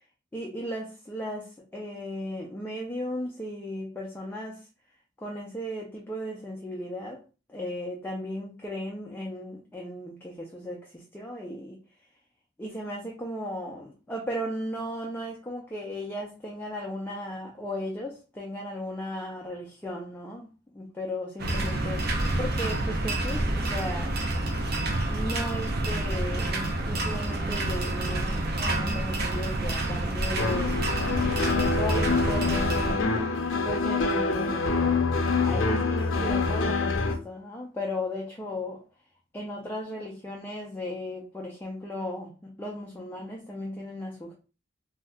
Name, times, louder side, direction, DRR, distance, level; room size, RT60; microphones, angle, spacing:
voice 1, 0.3-4.7 5.2-7.2 7.5-11.8 12.6-24.3 24.8-30.8 31.5-33.3 33.6-38.8 39.3-44.3, left 1 dB, 10° left, 0.4 m, -36 dB
sound 1, 21.4-32.9, right 2 dB, 55° right, 0.6 m, -28 dB
sound 2, 30.4-37.1, left 3 dB, 80° left, 0.6 m, -26 dB
2.6 x 2.3 x 3.3 m
head